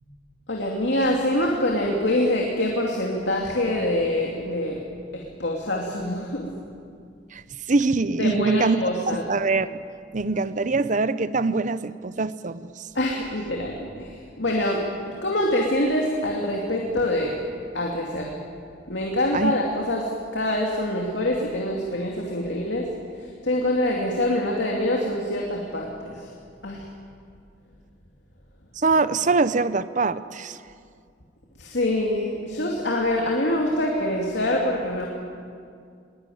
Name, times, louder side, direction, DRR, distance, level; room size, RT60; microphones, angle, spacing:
voice 1, 0.5-4.8 5.1-6.5 8.2-9.2 12.9-17.3 17.7-18.4 18.9-22.9 23.4-26.3 26.6-26.8 31.6-35.1, left 1 dB, 70° left, -1 dB, 2.6 m, -25 dB
voice 2, 7.7-8.8 9.1-9.8 10.1-12.8 19.3-19.5 28.8-30.6, right 3 dB, 45° right, 14 dB, 0.7 m, -23 dB
21.5 x 19.0 x 9.4 m, 2.3 s
head